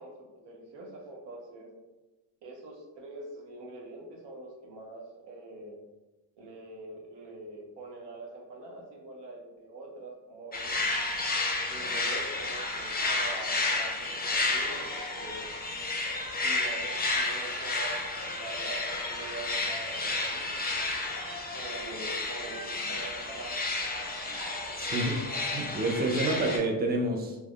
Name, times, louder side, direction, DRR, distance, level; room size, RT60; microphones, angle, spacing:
voice 1, 0.0-1.8 2.4-5.8 6.4-10.8 11.7-15.6 16.3-20.5 21.5-23.5, right 2 dB, 80° right, -1 dB, 0.7 m, -44 dB
sound 1, 10.5-26.6, left 2 dB, 20° left, 0.6 m, -31 dB
voice 2, 24.8-25.3 25.5-27.4, right 2 dB, 25° right, 3 dB, 0.5 m, -28 dB
3.3 x 2.1 x 2.3 m, 1.1 s
supercardioid pair, 50°, 42 cm